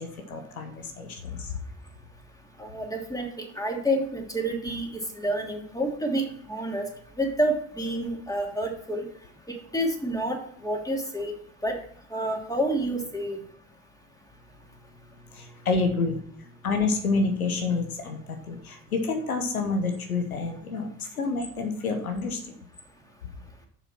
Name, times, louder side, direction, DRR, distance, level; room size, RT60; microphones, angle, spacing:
voice 1, 0.0-1.6 15.3-22.6, left 3 dB, 90° left, 5 dB, 0.9 m, -29 dB
voice 2, 2.6-4.9 5.1-6.2 6.5-6.9 7.2-9.1 9.7-11.3 11.6-11.8 12.1-13.4, right 1 dB, 10° left, 1 dB, 2.8 m, -28 dB
7.1 x 6.8 x 5.9 m, 0.65 s
figure-of-eight pair, 40°, 42 cm